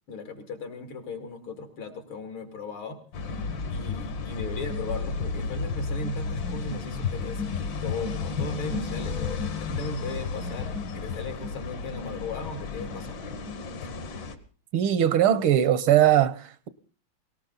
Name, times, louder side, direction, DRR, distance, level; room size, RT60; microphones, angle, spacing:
voice 1, 0.1-3.0 3.7-13.3, left 3 dB, 80° left, 3.3 m, -37 dB
sound 1, 3.1-14.3, left 4 dB, 65° left, 2.1 m, -32 dB
voice 2, 14.7-16.7, right 11 dB, 80° right, 1.8 m, -21 dB
19.0 x 18.5 x 4.0 m
omnidirectional pair, 2.3 m